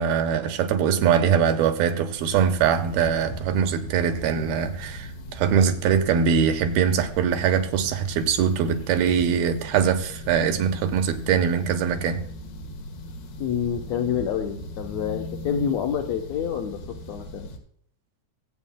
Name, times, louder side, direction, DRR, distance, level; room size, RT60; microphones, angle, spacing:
voice 1, 0.0-12.2, right 7 dB, 85° right, 8 dB, 2.8 m, -22 dB
sound 1, 2.2-17.6, left 1 dB, 90° left, 3.5 m, -38 dB
voice 2, 13.4-16.8 17.1-17.5, left 8 dB, 75° left, 1 dB, 1.7 m, -27 dB
23.0 x 8.3 x 2.2 m, 0.66 s
omnidirectional pair, 4.2 m